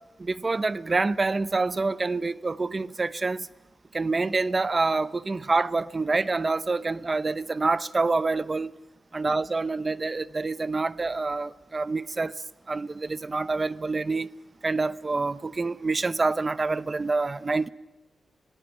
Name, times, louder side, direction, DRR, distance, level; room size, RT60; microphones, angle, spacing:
voice 1, 0.2-3.5 3.9-8.7 9.1-12.3 12.7-14.3 14.6-17.7, right 3 dB, 30° right, 0.7 m, -27 dB
23.5 x 16.5 x 9.1 m
wide cardioid pair, 100°, 0 cm